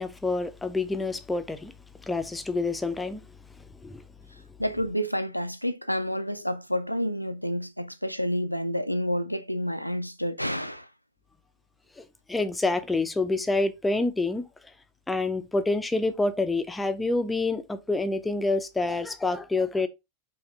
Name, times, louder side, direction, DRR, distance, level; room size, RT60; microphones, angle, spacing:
voice 1, 0.0-1.7 2.1-3.2 3.8-4.0 12.0-12.1 12.3-14.5 15.1-19.9, left 2 dB, 10° left, 0.5 m, -27 dB
voice 2, 4.6-10.9, equal, 90° left, 0.3 m, -29 dB
4.9 x 2.7 x 3.4 m
figure-of-eight pair, 90°, 0 cm